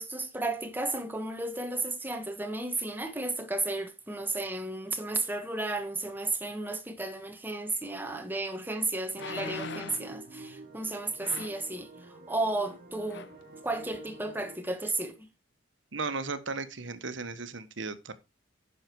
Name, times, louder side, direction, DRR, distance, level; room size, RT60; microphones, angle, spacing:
voice 1, 0.0-13.3 13.6-15.3, right 2 dB, 10° right, 1.5 m, -33 dB
sound 1, 8.1-8.2 9.1-10.1 11.2-11.7 12.6-12.8 13.1-13.4 13.9-14.0, left 5 dB, 65° left, 0.7 m, -41 dB
sound 2, 9.2-14.6, right 2 dB, 50° right, 3.8 m, -48 dB
voice 2, 15.9-18.1, right 4 dB, 70° right, 1.3 m, -35 dB
10.0 x 6.5 x 4.7 m
head